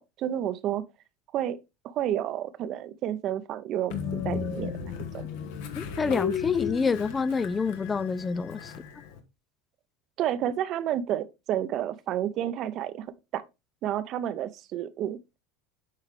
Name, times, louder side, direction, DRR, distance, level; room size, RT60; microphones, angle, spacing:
voice 1, 0.2-0.8 1.3-1.6 1.8-4.7 5.1-5.3 10.2-13.1 13.3-13.4 13.8-15.4, right 11 dB, 50° right, 0.7 m, -30 dB
Train, 3.9-9.2, left 7 dB, 70° left, 1.2 m, -34 dB
voice 2, 5.8-8.7, left 5 dB, 25° left, 0.3 m, -27 dB
7.5 x 4.8 x 3.3 m
hypercardioid pair, 85°, 0 cm